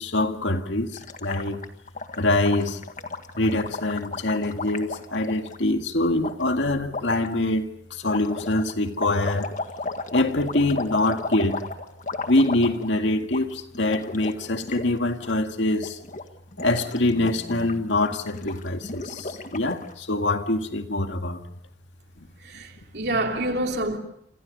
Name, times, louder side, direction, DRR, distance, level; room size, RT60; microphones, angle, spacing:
voice 1, 0.0-1.7 2.2-2.8 3.4-9.5 10.1-11.7 12.3-16.0 16.6-21.4, left 2 dB, 75° left, 2.0 m, -24 dB
Gurgling, 0.9-5.6 6.2-6.3 6.9-7.3 8.0-13.0 13.2-13.4 13.7-14.9 15.1-15.3 15.7-16.2 16.5-19.9, left 3 dB, 45° left, 1.8 m, -34 dB
voice 2, 22.4-24.0, right 1 dB, 60° right, 3.1 m, -27 dB
28.0 x 27.5 x 5.4 m
head